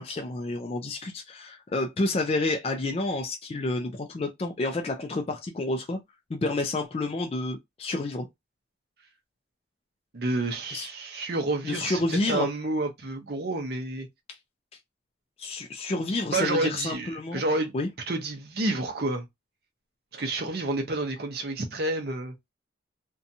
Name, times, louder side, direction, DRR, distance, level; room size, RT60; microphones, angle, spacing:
voice 1, 0.0-6.0 6.3-8.3 10.7-10.9 11.6-12.5 14.3-14.4 15.4-17.4 17.7-17.9, left 2 dB, 30° left, 0.3 m, -29 dB
voice 2, 10.1-14.1 16.3-17.7 18.1-19.3 20.1-22.3, right 2 dB, 55° right, 0.7 m, -29 dB
2.6 x 2.2 x 2.6 m
head